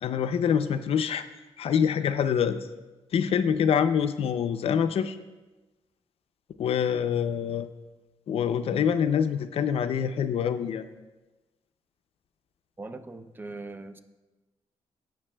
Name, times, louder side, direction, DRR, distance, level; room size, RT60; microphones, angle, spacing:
voice 1, 0.0-1.2 1.6-2.6 3.1-5.2 6.6-7.7 8.3-10.8, left 8 dB, 65° left, 10 dB, 0.4 m, -25 dB
voice 2, 12.8-14.0, right 2 dB, 20° right, 9 dB, 0.5 m, -40 dB
16.0 x 6.5 x 2.2 m, 1.1 s
cardioid pair, 115°, 11 cm